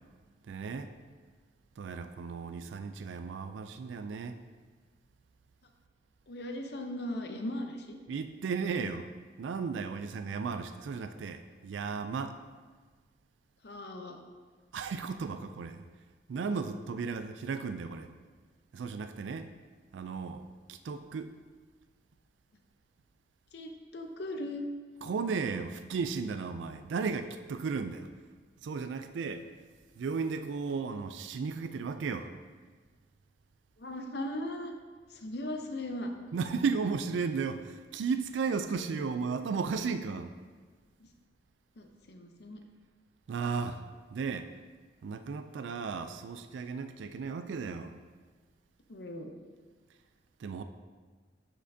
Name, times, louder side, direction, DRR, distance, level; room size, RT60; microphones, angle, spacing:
voice 1, 0.5-0.9 1.8-4.4 8.1-9.1 9.4-12.4 14.7-15.8 16.3-18.1 18.7-19.5 19.9-21.3 25.0-28.1 28.6-29.4 30.0-32.3 36.3-40.3 43.3-43.8 44.1-44.5 45.0-48.0 50.4-50.6, right 5 dB, 85° right, 9 dB, 0.3 m, -35 dB
voice 2, 6.3-8.0 13.6-14.2 23.5-24.7 33.8-34.7 35.1-36.1 41.8-42.6 48.9-49.3, left 1 dB, 60° left, 4 dB, 0.7 m, -38 dB
7.4 x 6.5 x 2.7 m, 1.5 s
head